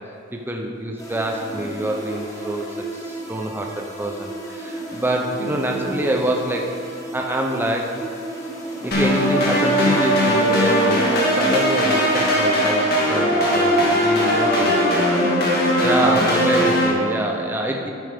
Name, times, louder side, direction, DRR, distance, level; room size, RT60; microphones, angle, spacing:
voice 1, 0.3-2.7 2.9-7.9 8.8-14.8 15.8-17.9, right 1 dB, 10° right, 1 dB, 0.6 m, -26 dB
sound 1, 1.0-12.8, right 2 dB, 15° left, 1.6 m, -34 dB
voice 2, 5.4-6.0 14.5-16.3 17.6-17.8, right 1 dB, 70° right, 5 dB, 0.8 m, -30 dB
sound 2, 8.9-16.9, equal, 55° left, 1.9 m, -19 dB
10.5 x 9.0 x 3.6 m, 2.5 s
head